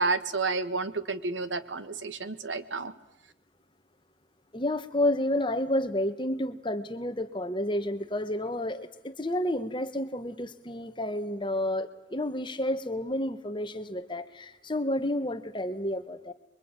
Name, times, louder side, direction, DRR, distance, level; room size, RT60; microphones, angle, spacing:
voice 1, 0.0-2.9, right 3 dB, 85° right, 1.5 m, -30 dB
voice 2, 4.5-16.3, left 1 dB, 25° left, 1.3 m, -30 dB
27.0 x 23.0 x 9.1 m
head